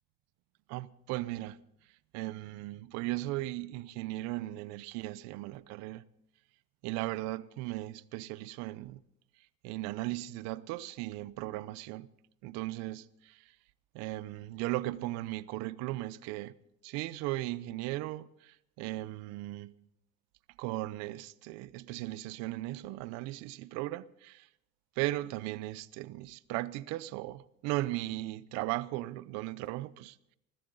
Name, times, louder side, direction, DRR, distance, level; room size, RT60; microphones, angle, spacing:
voice 1, 0.7-1.6 2.1-6.0 6.8-9.0 9.6-12.1 12.4-13.5 13.9-16.5 16.8-19.9 20.6-24.5 25.0-30.2, right 17 dB, 65° right, 0.7 m, -37 dB
20.5 x 14.5 x 3.9 m
cardioid pair, 140°, 29 cm